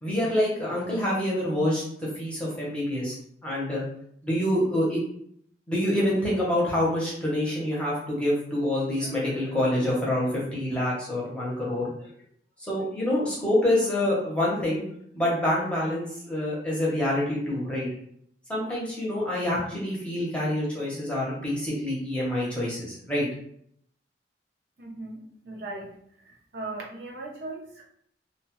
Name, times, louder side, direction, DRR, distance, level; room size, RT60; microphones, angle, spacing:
voice 1, 0.0-3.2 3.4-3.8 4.2-5.0 5.7-12.1 12.6-14.8 15.1-17.9 18.5-23.3, left 1 dB, 5° left, -6 dB, 0.8 m, -26 dB
voice 2, 24.8-26.0 26.2-27.8, right 2 dB, 60° right, -1 dB, 0.6 m, -38 dB
2.6 x 2.3 x 3.0 m, 0.68 s
head